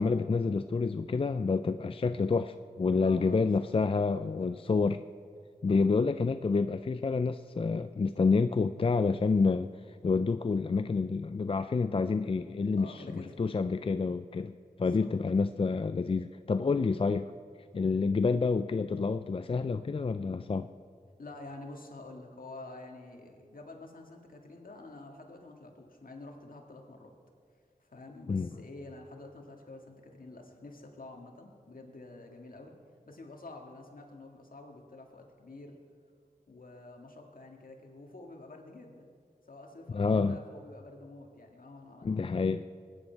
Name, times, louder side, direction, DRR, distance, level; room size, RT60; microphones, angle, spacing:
voice 1, 0.0-5.0 5.6-9.7 10.0-14.5 14.8-17.3 17.7-20.7 28.3-28.5 39.9-40.4 42.0-42.6, left 4 dB, 35° left, 11 dB, 0.4 m, -28 dB
voice 2, 3.0-3.7 4.4-4.5 5.7-5.9 12.8-13.3 14.8-15.1 21.2-27.1 27.8-32.7 33.1-35.8 36.5-39.1 39.5-42.1, left 2 dB, 65° left, 2 dB, 1.9 m, -48 dB
21.0 x 9.8 x 4.6 m, 2.3 s
wide cardioid pair, 55°, 16 cm